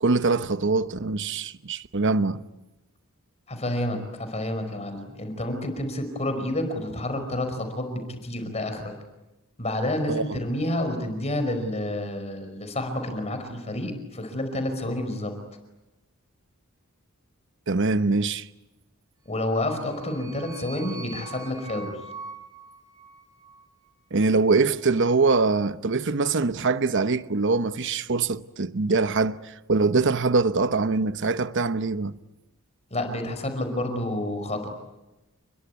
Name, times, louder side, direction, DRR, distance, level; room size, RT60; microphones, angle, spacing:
voice 1, 0.0-2.4 10.1-10.2 17.7-18.5 24.1-32.2, right 3 dB, 60° right, 0.9 m, -23 dB
voice 2, 3.5-8.9 9.6-15.3 19.3-22.0 32.9-34.7, left 1 dB, 30° left, 5.0 m, -29 dB
sound 1, 19.4-23.7, right 3 dB, 15° right, 6.2 m, -43 dB
29.0 x 22.0 x 9.4 m
head